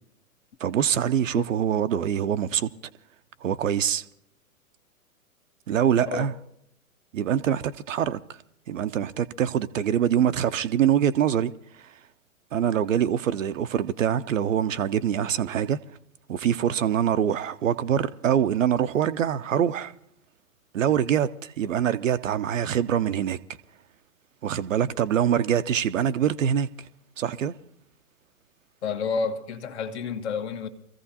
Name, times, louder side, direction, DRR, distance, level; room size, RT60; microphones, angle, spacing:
voice 1, 0.6-2.7 3.4-4.0 5.7-6.3 7.1-8.2 8.7-11.9 12.5-15.8 16.3-19.9 20.7-23.4 24.4-26.9 27.2-27.5, right 9 dB, 60° right, 0.7 m, -24 dB
voice 2, 28.8-30.7, left 5 dB, 50° left, 1.4 m, -30 dB
24.5 x 15.0 x 2.8 m
figure-of-eight pair, 115°, 43 cm